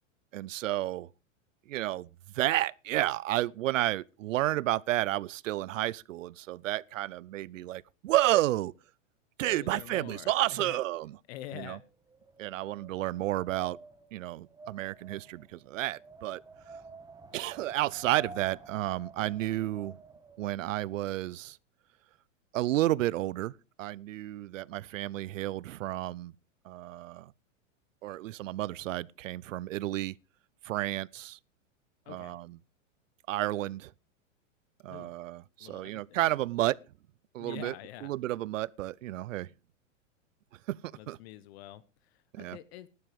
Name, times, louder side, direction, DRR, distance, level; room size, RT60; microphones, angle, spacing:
voice 1, 0.3-1.1 1.7-2.1 2.3-8.7 9.4-11.2 11.5-11.8 12.4-13.8 14.1-16.4 17.3-20.0 20.4-21.6 22.5-23.5 23.8-26.3 26.7-27.3 28.0-30.1 30.6-31.4 32.1-32.6 33.3-33.9 34.8-36.8 37.3-37.7 38.0-39.5 40.7-41.2 42.3-42.6, right 15 dB, 80° right, 0.6 m, -31 dB
voice 2, 9.5-10.3 10.6-10.8 11.3-11.8 32.1-32.4 34.9-35.1 35.6-36.2 37.4-38.1 41.0-42.9, left 14 dB, 55° left, 1.0 m, -46 dB
Wind, 11.4-20.6, right 3 dB, 10° right, 1.7 m, -51 dB
12.5 x 11.5 x 4.7 m
hypercardioid pair, 130°, 38 cm